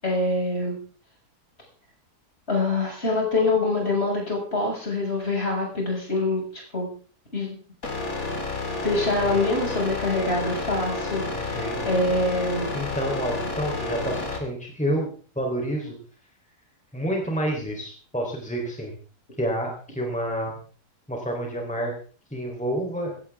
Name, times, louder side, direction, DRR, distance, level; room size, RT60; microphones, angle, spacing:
voice 1, 0.0-0.8 2.5-6.9 7.3-7.6 8.8-12.7, left 2 dB, 40° left, -1 dB, 7.0 m, -25 dB
sound 1, 7.8-14.4, left 3 dB, 55° left, 3.5 m, -30 dB
voice 2, 11.3-11.9 12.7-15.1 15.4-16.0 16.9-18.9 19.4-20.5 21.1-21.9 22.3-23.1, equal, 5° left, 0 dB, 3.9 m, -29 dB
17.5 x 17.0 x 3.6 m, 0.41 s
omnidirectional pair, 1.7 m